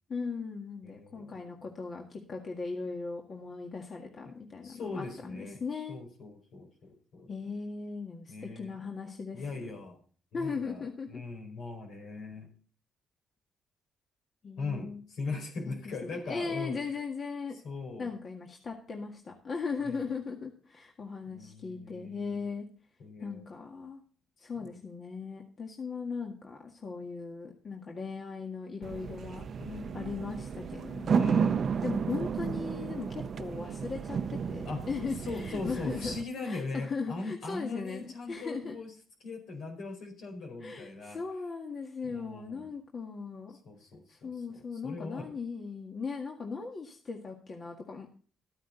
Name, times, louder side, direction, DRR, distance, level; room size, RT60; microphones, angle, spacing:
voice 1, 0.1-6.0 7.3-9.7 10.3-11.2 14.4-15.0 15.7-15.8 16.0-17.6 18.0-22.7 23.2-24.0 24.4-29.5 29.9-31.4 31.8-36.1 36.4-38.8 40.6-43.6 44.1-48.1, left 4 dB, 45° left, 1 dB, 1.8 m, -38 dB
voice 2, 0.8-1.6 4.6-5.6 5.9-7.3 8.3-8.8 9.3-10.0 10.3-12.5 14.6-16.9 17.6-18.1 19.8-20.0 21.3-22.5 23.0-23.4 24.5-24.8 29.6-29.9 31.0-31.7 34.6-34.9 35.2-38.9 39.2-41.2 42.0-42.7 43.6-45.4, left 3 dB, 75° left, 2 dB, 4.8 m, -40 dB
sound 1, 28.8-36.2, right 6 dB, 55° right, 0.7 m, -32 dB
13.5 x 9.2 x 3.9 m, 0.41 s
cardioid pair, 90°, 0 cm